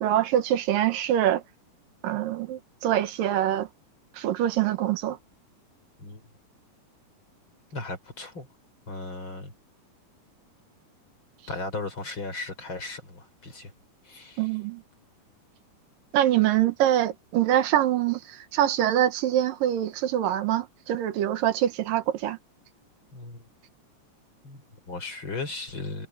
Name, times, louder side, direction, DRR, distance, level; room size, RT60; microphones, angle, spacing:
voice 1, 0.0-1.4 2.0-3.7 4.1-5.2 14.4-14.8 16.1-22.4, right 12 dB, 85° right, 3.0 m, -24 dB
voice 2, 7.7-8.5 8.9-9.5 11.5-13.7 14.0-14.5 23.1-23.5 24.4-26.1, left 3 dB, 35° left, 5.5 m, -36 dB
omnidirectional pair, 3.8 m